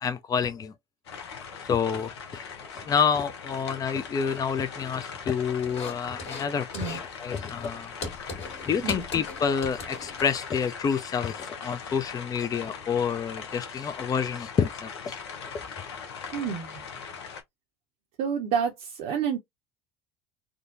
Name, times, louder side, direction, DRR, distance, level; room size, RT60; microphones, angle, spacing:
voice 1, 0.0-0.7 1.7-2.5 2.9-7.9 8.7-15.1, left 7 dB, 25° left, 0.4 m, -28 dB
sound 1, 1.0-17.4, left 6 dB, 75° left, 0.7 m, -40 dB
sound 2, 5.6-6.5 6.7-7.1 7.3-10.6, left 3 dB, 50° left, 1.5 m, -39 dB
voice 2, 16.3-16.8 18.2-19.4, right 7 dB, 60° right, 0.7 m, -29 dB
3.6 x 2.2 x 2.5 m
hypercardioid pair, 65°, 14 cm